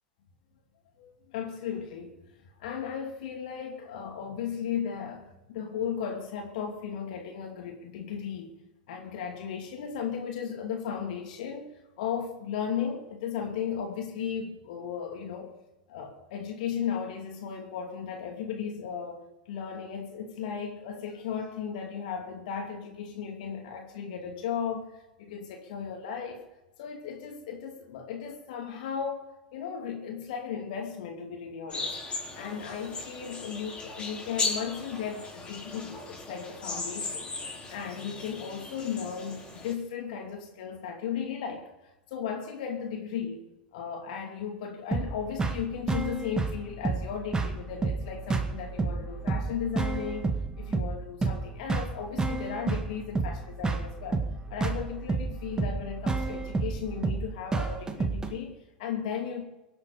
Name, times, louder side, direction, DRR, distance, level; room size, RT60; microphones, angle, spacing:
voice 1, 1.0-8.5 8.9-15.5 15.9-19.2 19.5-24.9 25.2-26.4 26.8-31.9 32.3-37.3 37.7-41.7 42.1-43.4 43.7-54.2 54.5-59.4, left 7 dB, 60° left, 2.8 m, -36 dB
sound 1, 31.7-39.7, left 3 dB, 20° left, 5.0 m, -37 dB
sound 2, 44.9-58.3, right 3 dB, 15° right, 1.9 m, -30 dB
24.5 x 8.2 x 5.1 m
figure-of-eight pair, 85°, 5 cm